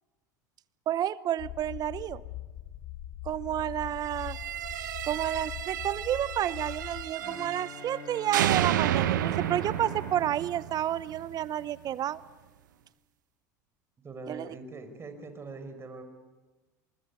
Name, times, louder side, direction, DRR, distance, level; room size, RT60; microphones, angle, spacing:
voice 1, 0.9-2.2 3.2-4.4 5.1-12.2 14.3-14.5, right 11 dB, 40° right, 18 dB, 0.9 m, -30 dB
sound 1, 1.4-7.0, left 13 dB, 60° left, 1.9 m, -42 dB
sound 2, 4.2-8.0 8.3-11.3, right 12 dB, 80° right, 1.3 m, -31 dB
Bowed string instrument, 7.2-12.1, left 5 dB, 25° left, 3.1 m, -47 dB
voice 2, 14.0-16.0, right 3 dB, 25° right, 8 dB, 4.9 m, -42 dB
24.5 x 22.0 x 9.6 m, 1.3 s
hypercardioid pair, 90°, 10 cm